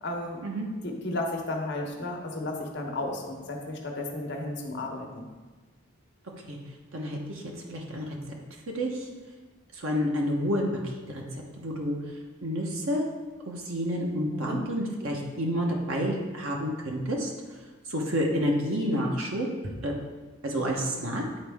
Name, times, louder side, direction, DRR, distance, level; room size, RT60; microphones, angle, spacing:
voice 1, 0.0-0.4 0.8-5.3 14.3-14.6, left 2 dB, 60° left, 1 dB, 1.0 m, -33 dB
voice 2, 6.9-7.4 7.7-8.1 8.7-9.1 9.7-11.2 11.6-12.0 12.4-13.0 13.5-17.3 17.9-19.5 19.8-19.9 20.4-21.2, equal, 80° right, 0 dB, 1.1 m, -29 dB
9.5 x 4.2 x 3.5 m, 1.3 s
head